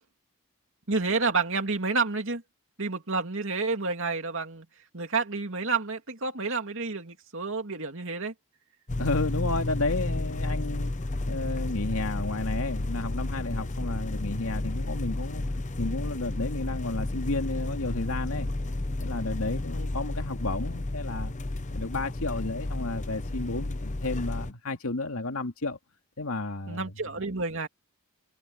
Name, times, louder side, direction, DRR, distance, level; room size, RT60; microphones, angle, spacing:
voice 1, 0.9-2.4 2.8-4.7 4.9-8.3 26.7-27.7, right 4 dB, 60° right, 2.9 m, -29 dB
sound 1, 8.9-24.5, left 2 dB, 35° left, 0.8 m, -32 dB
voice 2, 9.0-10.9 11.3-15.4 15.8-18.5 19.0-21.3 21.7-25.8 26.2-26.9, left 2 dB, 70° left, 2.4 m, -32 dB
head